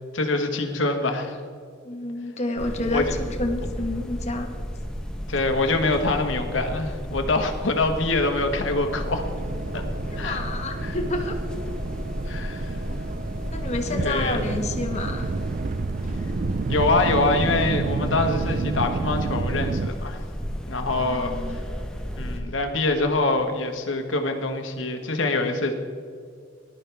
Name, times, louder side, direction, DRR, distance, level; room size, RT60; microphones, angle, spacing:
voice 1, 0.1-1.4 2.9-3.0 5.3-9.2 9.7-9.8 10.2-10.4 10.8-10.9 12.2-12.7 13.9-14.4 16.7-20.2 20.7-21.4 22.2-25.7, left 2 dB, 85° left, 4 dB, 1.5 m, -24 dB
voice 2, 1.8-4.5 10.1-11.4 12.9-13.0 13.5-15.3 20.9-21.6 22.4-22.5, left 2 dB, 35° left, 3 dB, 1.4 m, -29 dB
sound 1, 2.6-22.4, equal, 5° left, 1.0 m, -33 dB
sound 2, 8.8-19.9, right 4 dB, 40° right, 0.3 m, -30 dB
19.0 x 12.0 x 3.5 m, 2.3 s
head